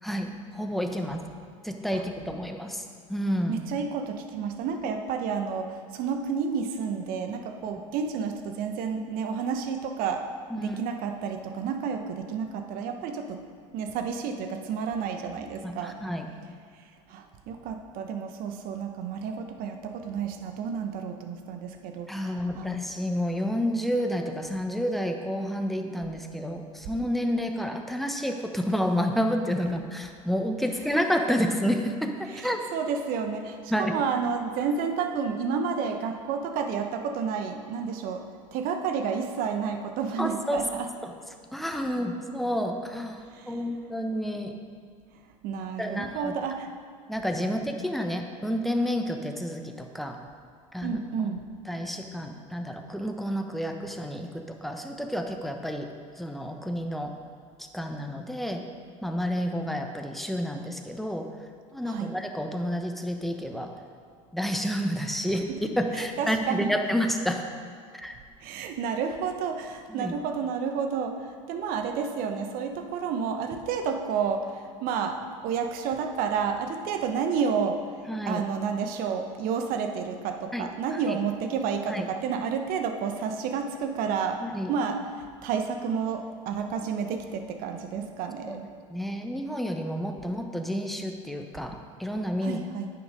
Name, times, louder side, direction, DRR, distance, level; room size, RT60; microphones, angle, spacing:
voice 1, 0.0-1.2 1.6-2.8 3.1-3.6 10.5-10.8 15.6-16.3 22.1-32.6 33.7-34.0 40.2-40.6 41.0-41.1 41.5-44.5 45.8-46.3 47.1-50.2 50.7-51.0 51.7-55.9 56.2-57.1 57.7-58.6 59.0-61.3 61.7-63.7 64.3-65.5 65.8-67.5 67.9-68.2 69.9-70.1 78.1-78.4 80.5-81.2 81.9-82.0 84.4-84.7 88.5-88.6 88.9-92.6, equal, ahead, 4 dB, 1.0 m, -30 dB
voice 2, 3.5-10.3 10.6-13.4 13.7-16.0 17.1-22.3 22.6-22.7 32.3-40.9 43.3-43.6 45.4-46.7 50.8-51.4 61.9-62.1 65.5-65.6 66.2-66.7 68.4-77.8 78.3-84.4 84.7-88.7 92.4-92.9, right 6 dB, 60° right, 6 dB, 1.0 m, -30 dB
9.5 x 6.9 x 5.1 m, 2.1 s
hypercardioid pair, 80°, 17 cm